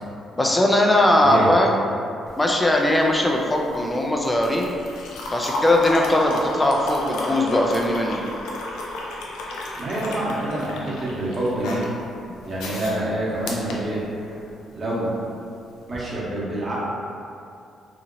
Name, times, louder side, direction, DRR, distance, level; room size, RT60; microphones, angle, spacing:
voice 1, 0.4-1.7 2.4-4.7 5.3-8.2, left 1 dB, 15° left, 0 dB, 0.4 m, -19 dB
voice 2, 1.2-1.5 9.8-11.8 12.4-14.0 14.7-15.1 15.9-16.7, right 1 dB, 35° right, -7 dB, 0.9 m, -26 dB
sound 1, 2.3-14.6 15.8-16.0, left 1 dB, 90° left, 0.4 m, -32 dB
2.8 x 2.7 x 2.6 m, 2.5 s
cardioid pair, 90°, 0 cm